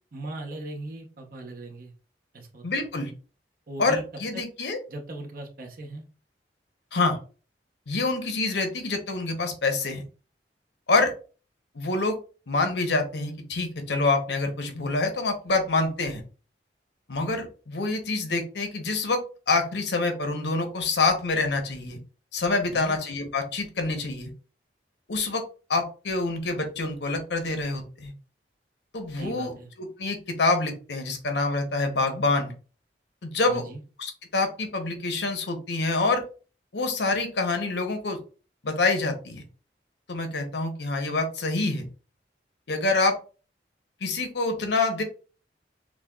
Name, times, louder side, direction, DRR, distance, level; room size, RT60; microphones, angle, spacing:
voice 1, 0.1-1.9 2.3-2.7 3.7-4.0 4.3-4.4 4.9-6.0 22.7-23.0 29.2-29.7 33.5-33.8, right 2 dB, 55° right, 2 dB, 0.8 m, -38 dB
voice 2, 2.6-3.1 3.8-4.8 6.9-7.2 7.9-10.0 10.9-11.1 11.7-12.2 12.5-16.2 17.1-22.0 22.3-24.3 25.1-25.4 25.7-28.1 28.9-29.5 29.8-32.5 33.2-33.6 34.0-36.2 36.7-38.2 38.6-39.4 40.1-41.9 42.7-43.2 44.0-45.0, left 3 dB, 75° left, 5 dB, 0.8 m, -26 dB
6.1 x 2.3 x 2.3 m, 0.36 s
head